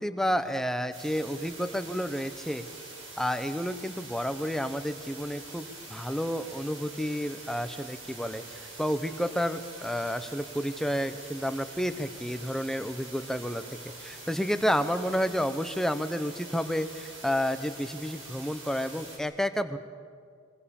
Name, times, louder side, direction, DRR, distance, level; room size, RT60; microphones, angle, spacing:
voice 1, 0.0-2.7 3.2-13.6 14.0-19.8, equal, ahead, 10 dB, 0.9 m, -30 dB
sound 1, 0.9-19.2, right 2 dB, 75° right, 7.2 m, -45 dB
24.5 x 23.5 x 7.1 m, 2.2 s
head